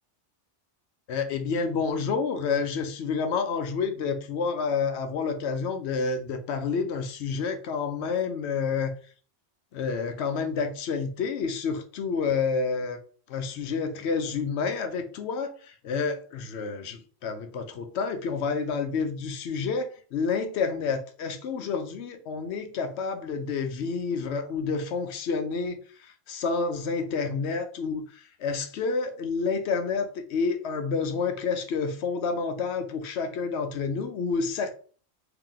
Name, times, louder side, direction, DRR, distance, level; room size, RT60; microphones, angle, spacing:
voice 1, 1.1-9.0 9.7-13.0 13.3-34.7, left 5 dB, 75° left, 0.8 m, -29 dB
2.9 x 2.9 x 3.7 m
omnidirectional pair, 1.2 m